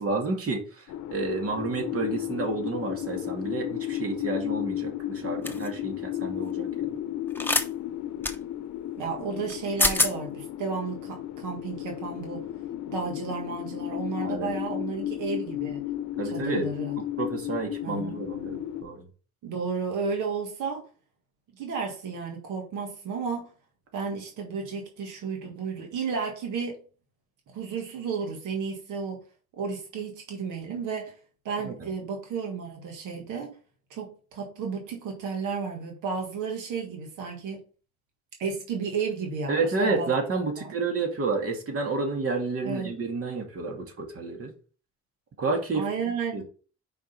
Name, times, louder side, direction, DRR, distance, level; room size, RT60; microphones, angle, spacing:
voice 1, 0.0-6.9 14.2-14.5 16.2-16.7 17.0-19.1 31.6-31.9 39.5-44.5 45.4-45.9 46.3-46.4, right 3 dB, 50° right, 2.4 m, -30 dB
sound 1, 0.9-18.8, left 12 dB, 75° left, 0.8 m, -34 dB
sound 2, 5.5-5.7 7.4-7.7 8.2-8.4 9.5-9.6 9.8-10.1, left 2 dB, 5° left, 0.9 m, -24 dB
voice 2, 9.0-12.5 12.9-15.8 16.2-17.0 17.8-18.2 19.4-20.8 21.6-23.5 23.9-26.7 27.5-29.2 29.6-31.1 31.4-33.6 33.9-37.6 38.4-40.1 40.6-40.7 42.6-42.9 45.7-46.4, right 5 dB, 85° right, 1.7 m, -33 dB
5.3 x 5.1 x 5.3 m
cardioid pair, 90°, 30 cm